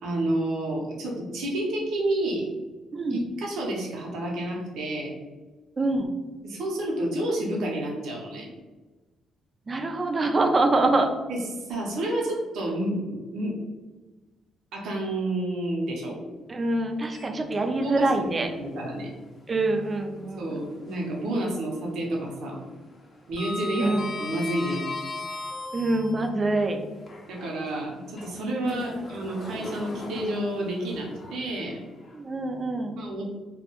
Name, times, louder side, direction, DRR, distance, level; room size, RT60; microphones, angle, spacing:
voice 1, 0.0-2.6 3.1-5.1 6.4-8.5 11.3-11.4 11.7-13.6 14.7-16.2 17.8-18.3 18.6-19.1 20.4-22.6 23.3-24.9 27.3-31.8 33.0-33.3, right 1 dB, 75° right, -2 dB, 0.6 m, -30 dB
voice 2, 5.8-6.1 9.7-11.1 16.5-18.5 19.5-20.6 23.7-24.0 25.7-26.8 28.7-29.0 32.1-33.0, right 2 dB, 35° right, 4 dB, 0.3 m, -25 dB
Sliding door, 17.0-18.0 18.4-18.5 20.2-21.3 21.5-21.9 22.2-26.3 26.9-32.1, left 2 dB, 45° left, 0.5 m, -39 dB
2.3 x 2.1 x 2.9 m, 1.3 s
cardioid pair, 90°, 0 cm